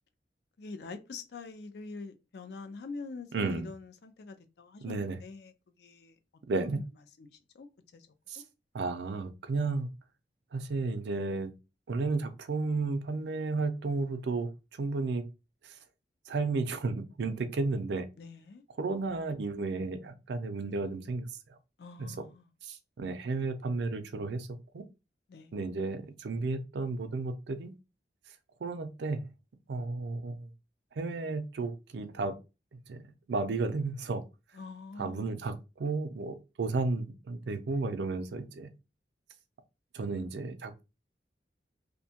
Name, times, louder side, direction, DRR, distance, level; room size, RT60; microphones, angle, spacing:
voice 1, 0.6-6.2 6.6-6.9 7.2-7.7 7.9-8.1 8.3-8.4 18.2-18.6 21.8-22.5 25.3-25.5 34.5-35.3, left 4 dB, 65° left, 0.4 m, -45 dB
voice 2, 3.3-3.7 4.8-5.2 6.5-6.8 8.3-8.4 8.7-9.9 10.5-11.5 11.9-14.5 14.8-15.2 15.6-15.7 16.3-18.1 18.8-21.3 22.0-22.2 22.6-24.5 24.7-24.8 25.5-27.7 28.6-29.2 29.7-30.5 31.0-32.3 32.9-33.0 33.3-34.2 35.0-38.7 39.9-40.8, right 3 dB, 75° right, 0.4 m, -33 dB
2.6 x 2.2 x 2.7 m
head